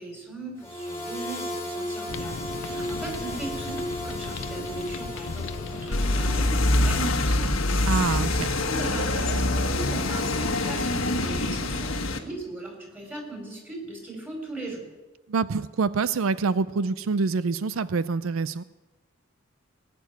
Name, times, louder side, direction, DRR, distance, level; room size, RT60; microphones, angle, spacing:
voice 1, 0.0-7.4 8.2-14.8, right 2 dB, 10° right, 0 dB, 4.6 m, -38 dB
sound 1, 0.6-6.4, equal, 15° left, 2.2 m, -35 dB
sound 2, 2.1-7.9, left 4 dB, 70° left, 0.6 m, -36 dB
sound 3, 5.9-12.2, left 2 dB, 85° left, 1.4 m, -25 dB
voice 2, 7.9-8.5 15.3-18.6, right 4 dB, 90° right, 15 dB, 0.5 m, -26 dB
19.5 x 7.0 x 9.4 m, 1.1 s
head